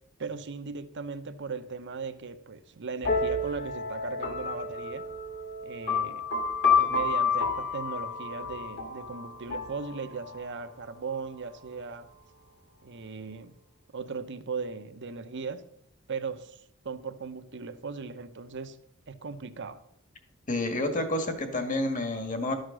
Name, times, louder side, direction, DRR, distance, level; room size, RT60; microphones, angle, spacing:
voice 1, 0.2-5.1 5.6-6.2 6.7-12.1 12.8-13.5 13.9-15.6 16.1-18.8 19.1-19.8, right 4 dB, 55° right, 0.8 m, -38 dB
sound 1, 3.0-10.6, left 4 dB, 55° left, 2.0 m, -30 dB
voice 2, 20.5-22.5, left 1 dB, 40° left, 1.7 m, -29 dB
12.0 x 6.5 x 6.3 m
head